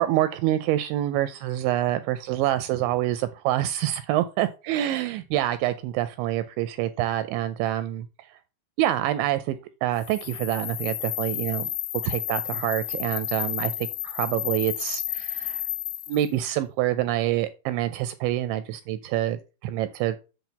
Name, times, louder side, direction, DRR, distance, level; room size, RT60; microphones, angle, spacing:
voice 1, 0.0-8.1 8.8-11.7 12.0-15.6 16.1-20.2, right 13 dB, 85° right, 11 dB, 2.6 m, -26 dB
sound 1, 10.0-16.3, left 15 dB, 80° left, 2.3 m, -32 dB
7.7 x 4.5 x 6.9 m, 0.32 s
omnidirectional pair, 5.6 m